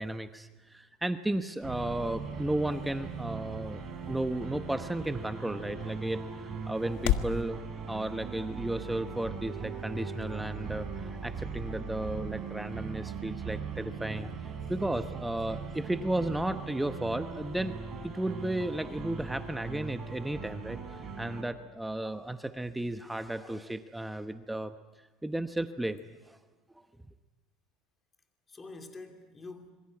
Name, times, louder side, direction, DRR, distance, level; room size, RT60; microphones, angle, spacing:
voice 1, 0.0-3.8 4.1-7.6 7.9-14.3 14.7-17.7 18.0-24.7 25.2-26.4 26.7-26.8, right 1 dB, 5° right, 1.0 m, -34 dB
sound 1, 1.1-7.4, left 11 dB, 75° left, 1.5 m, -38 dB
sound 2, 1.6-21.4, right 5 dB, 30° right, 6.4 m, -40 dB
voice 2, 6.7-7.1 28.5-29.7, left 3 dB, 20° left, 2.8 m, -47 dB
26.5 x 22.5 x 9.9 m
supercardioid pair, 120°, 0 cm